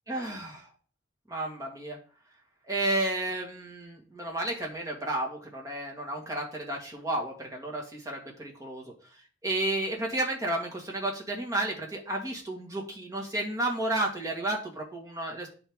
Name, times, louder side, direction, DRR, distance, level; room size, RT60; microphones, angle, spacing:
voice 1, 0.1-0.7 1.3-2.0 2.7-8.9 9.4-15.5, right 1 dB, 15° right, -2 dB, 1.7 m, -32 dB
9.6 x 4.6 x 3.6 m, 0.39 s
head